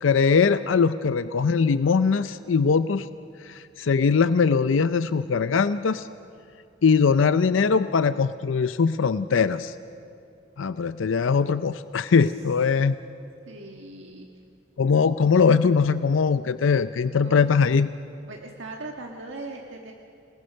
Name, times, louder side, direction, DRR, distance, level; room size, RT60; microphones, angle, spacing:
voice 1, 0.0-3.1 3.4-6.1 6.8-9.7 10.6-12.9 14.8-17.9, left 5 dB, 75° left, 13 dB, 0.5 m, -21 dB
voice 2, 13.5-14.3 17.0-17.4 18.3-19.9, right 2 dB, 75° right, 1 dB, 1.5 m, -39 dB
28.0 x 19.5 x 6.4 m, 2.6 s
head